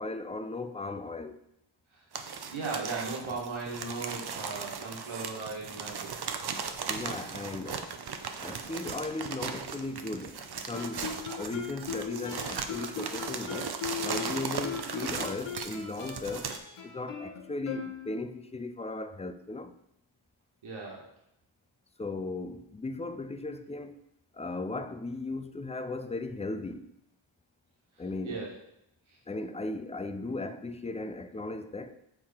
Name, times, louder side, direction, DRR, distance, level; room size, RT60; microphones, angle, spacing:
voice 1, 0.0-1.4 6.9-7.9 8.4-13.8 14.0-16.5 16.8-19.7 22.0-24.0 24.3-26.9 28.0-28.5 29.3-32.0, left 2 dB, 15° left, 0.3 m, -37 dB
sound 1, 2.1-16.6, right 6 dB, 50° right, 0.7 m, -37 dB
voice 2, 2.5-6.1 20.6-21.1 28.2-28.5 29.1-29.2, right 4 dB, 75° right, 1.7 m, -37 dB
Guitar, 10.7-18.4, left 7 dB, 90° left, 1.1 m, -39 dB
7.6 x 4.6 x 4.3 m
wide cardioid pair, 125°, 49 cm